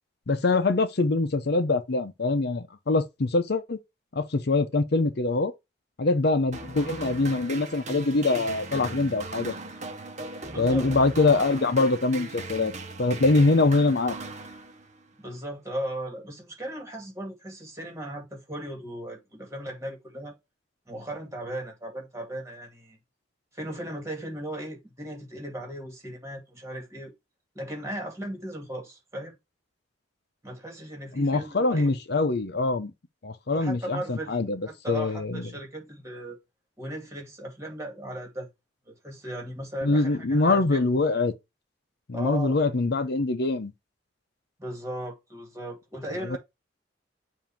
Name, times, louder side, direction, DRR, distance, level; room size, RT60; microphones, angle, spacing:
voice 1, 0.3-3.8 4.1-5.5 6.0-9.5 10.6-12.7 13.0-14.2 31.1-32.9 33.2-35.4 39.8-41.3 42.1-43.7 46.2-46.4, left 3 dB, 60° left, 0.7 m, -24 dB
sound 1, 6.5-15.1, right 2 dB, 40° right, 1.0 m, -38 dB
voice 2, 10.5-10.9 15.2-20.4 20.9-23.0 23.5-27.1 27.5-29.3 30.4-32.0 33.5-34.4 34.7-36.4 36.8-38.5 39.0-40.8 42.1-42.6 44.6-46.4, right 1 dB, 15° right, 2.2 m, -37 dB
7.3 x 2.7 x 5.7 m
head